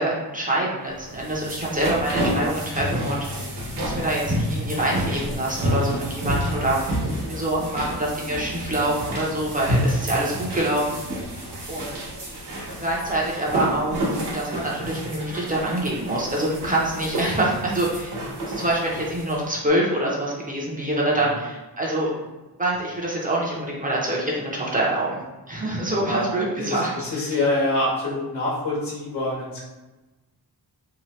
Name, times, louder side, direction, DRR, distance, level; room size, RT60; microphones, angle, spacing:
voice 1, 0.0-3.4 3.7-7.0 7.3-11.0 11.7-12.0 12.8-14.0 14.3-22.1 22.6-25.2 25.5-27.3, right 1 dB, 20° right, -4 dB, 0.6 m, -25 dB
sound 1, 1.0-19.4, equal, 90° right, 0.9 m, -29 dB
voice 2, 26.6-29.6, left 2 dB, 80° left, -5 dB, 1.1 m, -25 dB
2.8 x 2.1 x 3.1 m, 1.1 s
wide cardioid pair, 115°, 40 cm